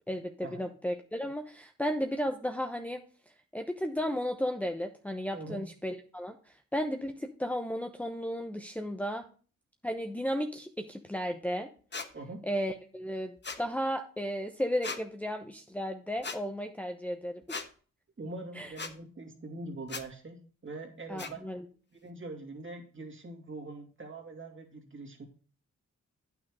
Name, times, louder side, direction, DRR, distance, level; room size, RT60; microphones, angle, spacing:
voice 1, 0.1-3.0 3.5-9.2 9.8-11.7 12.4-17.6 18.5-18.7 21.1-21.6, equal, 5° left, 3 dB, 0.9 m, -34 dB
voice 2, 5.3-5.6 12.1-12.4 18.2-21.4 21.9-25.2, right 2 dB, 40° right, 3 dB, 2.7 m, -43 dB
sound 1, 11.9-12.1 13.4-13.6 14.8-15.0 16.2-16.4 17.5-17.7 18.8-18.9 19.9-20.0 21.2-21.3, left 4 dB, 35° left, 1.2 m, -37 dB
9.1 x 5.9 x 4.8 m, 0.40 s
cardioid pair, 65°, 31 cm